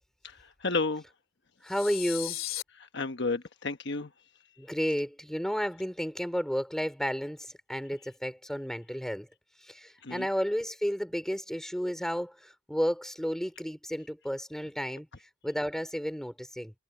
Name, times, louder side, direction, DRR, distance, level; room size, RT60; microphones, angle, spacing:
voice 1, 0.2-1.0 2.8-4.1 10.0-10.3, left 3 dB, 55° left, 1.2 m, -32 dB
voice 2, 1.6-2.4 4.6-7.4 7.7-9.3 9.7-15.1 15.4-16.7, equal, ahead, 3.6 m, -32 dB
sound 1, 1.7-2.6, left 16 dB, 75° left, 2.7 m, -36 dB
head